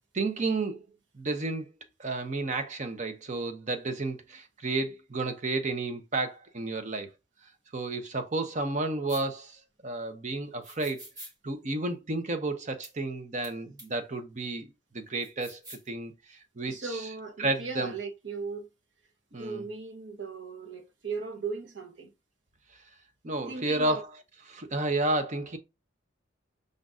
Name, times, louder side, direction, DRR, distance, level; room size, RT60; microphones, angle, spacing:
voice 1, 0.1-0.8 1.2-1.7 2.0-7.1 7.7-9.6 9.8-11.0 11.4-14.7 14.9-16.1 16.6-16.7 17.4-17.9 19.3-19.6 23.2-24.0 24.5-25.6, right 2 dB, 40° right, 0.7 m, -31 dB
sound 1, 9.1-9.2 10.6-11.3 12.8-12.9 13.4-13.5 13.8-13.9 15.2-15.9, right 1 dB, 20° right, 1.4 m, -46 dB
voice 2, 16.7-18.7 19.3-22.1 23.5-24.0, right 4 dB, 65° right, 1.0 m, -37 dB
5.2 x 3.9 x 2.4 m
head